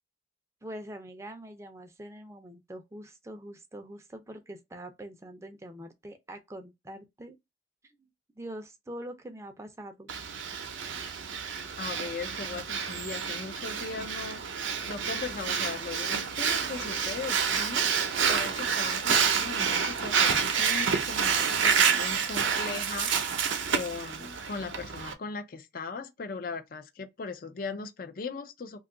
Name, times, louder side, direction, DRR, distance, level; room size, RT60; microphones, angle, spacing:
voice 1, 0.6-7.4 7.8-8.1 8.4-10.1, right 1 dB, 15° right, 0.5 m, -44 dB
Breathing, 10.1-25.1, right 6 dB, 85° right, 0.6 m, -28 dB
voice 2, 11.8-14.4 14.8-17.9 18.2-23.4 23.7-28.8, left 4 dB, 50° left, 0.4 m, -38 dB
2.7 x 2.3 x 3.7 m
head